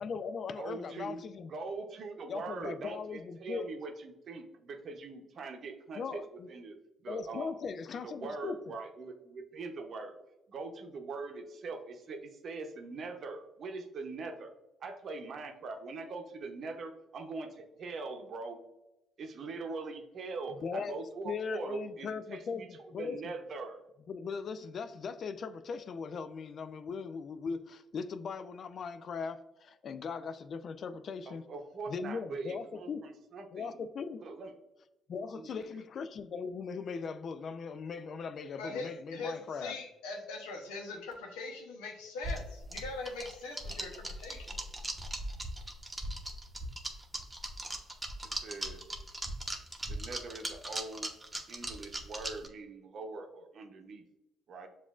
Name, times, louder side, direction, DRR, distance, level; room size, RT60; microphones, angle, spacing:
voice 1, 0.0-1.5 2.3-3.7 5.9-6.5 7.1-8.7 20.6-20.9 21.2-23.3 24.1-31.4 31.9-33.1 33.5-34.2 35.1-39.8, left 5 dB, 60° left, 0.3 m, -39 dB
voice 2, 0.5-1.2 1.5-6.2 6.5-6.8 7.0-7.6 8.0-10.2 10.5-14.5 14.8-18.6 19.2-22.7 23.0-23.8 31.3-33.8 34.2-34.5 35.3-35.6 48.2-48.8 49.9-51.1 51.5-54.0 54.5-54.7, right 3 dB, 60° right, 0.7 m, -42 dB
voice 3, 38.6-44.6, left 3 dB, 90° left, 0.7 m, -41 dB
sound 1, 42.2-52.5, right 1 dB, 20° right, 0.8 m, -39 dB
7.0 x 2.5 x 2.4 m
hypercardioid pair, 55°, 0 cm